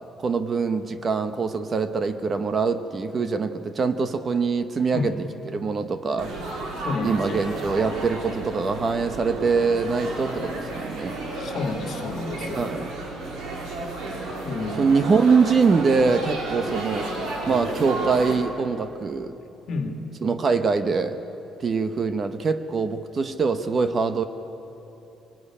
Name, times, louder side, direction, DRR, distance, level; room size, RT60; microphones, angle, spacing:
voice 1, 0.2-5.2 5.4-6.4 7.0-11.2 12.5-12.9 14.8-17.1 17.5-19.4 20.2-21.2 21.6-24.2, right 4 dB, 30° right, 10 dB, 0.9 m, -23 dB
Laughter / Chatter / Crowd, 6.2-18.3, right 2 dB, 80° right, 4.4 m, -32 dB
voice 2, 6.8-7.5 11.4-12.6 14.4-14.8 19.7-20.0, left 4 dB, 55° left, 5 dB, 2.3 m, -30 dB
23.5 x 19.0 x 10.0 m, 3.0 s
cardioid pair, 155°, 0 cm